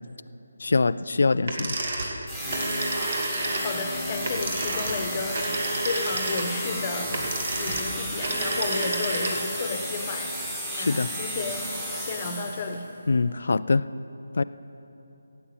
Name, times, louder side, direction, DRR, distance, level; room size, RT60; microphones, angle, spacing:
voice 1, 0.6-2.1 10.7-11.1 13.1-13.9 14.4-14.5, left 3 dB, 50° left, 15 dB, 0.3 m, -24 dB
sound 1, 1.4-9.6, right 2 dB, 40° right, 1.8 m, -30 dB
sound 2, 2.3-12.8, equal, 10° right, 1.8 m, -33 dB
voice 2, 3.6-5.4 5.8-7.1 7.6-10.3 10.7-11.7 12.0-12.9, left 4 dB, 25° left, 5 dB, 1.1 m, -32 dB
16.0 x 8.5 x 8.0 m, 2.8 s
figure-of-eight pair, 150°, 0 cm